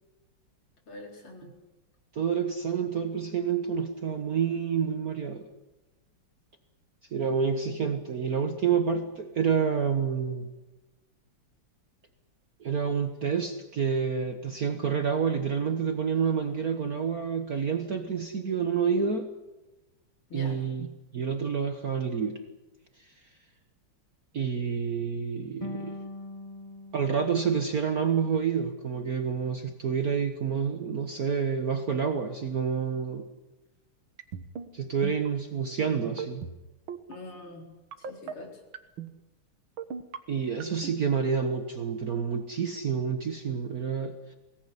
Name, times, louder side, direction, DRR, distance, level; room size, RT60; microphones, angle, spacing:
voice 1, 0.9-1.6 20.3-20.6 37.1-37.7 38.0-38.6, left 2 dB, 75° left, 2 dB, 5.0 m, -43 dB
voice 2, 2.1-5.5 7.1-10.5 12.6-19.3 20.3-22.4 23.0-23.1 24.3-26.0 26.9-33.3 34.7-36.5 40.3-44.4, right 6 dB, 45° right, 7 dB, 1.7 m, -28 dB
sound 1, 25.6-28.7, left 2 dB, 25° left, 0.8 m, -43 dB
sound 2, 34.2-34.7 35.0-35.3 36.0-36.5 36.9-37.1 37.9-38.3 38.7-39.1 39.8-40.2 40.6-40.9, right 7 dB, 70° right, 2.1 m, -36 dB
22.5 x 18.5 x 9.8 m, 1.0 s
omnidirectional pair, 2.3 m